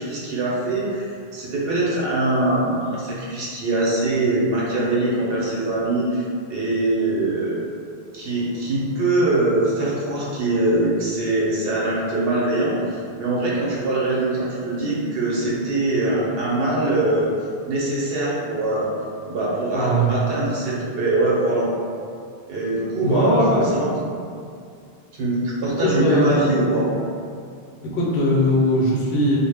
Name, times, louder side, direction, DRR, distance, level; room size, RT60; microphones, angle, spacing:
voice 1, 0.0-6.2 6.5-7.6 8.1-17.3 17.6-18.9 19.3-21.7 22.5-24.0 25.1-26.9, right 2 dB, 70° right, -6 dB, 0.8 m, -22 dB
voice 2, 19.7-20.1 23.0-23.7 25.8-26.7 27.9-29.4, equal, 75° left, -6 dB, 0.9 m, -20 dB
2.1 x 2.0 x 3.3 m, 2.3 s
omnidirectional pair, 1.0 m